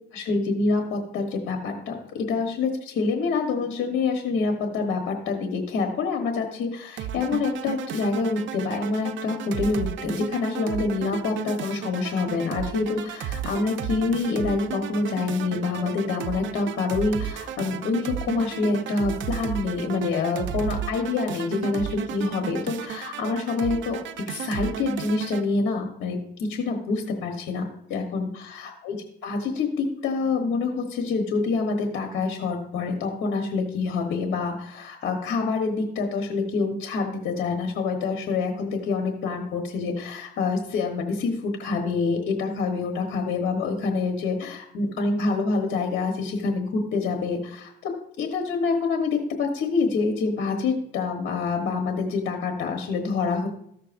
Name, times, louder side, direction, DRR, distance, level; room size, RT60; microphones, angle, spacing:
voice 1, 0.1-24.0 24.3-53.5, left 4 dB, 80° left, 3 dB, 1.2 m, -26 dB
sound 1, 7.0-25.5, right 10 dB, 70° right, 0.6 m, -34 dB
14.0 x 6.5 x 2.5 m, 0.71 s
cardioid pair, 90°, 20 cm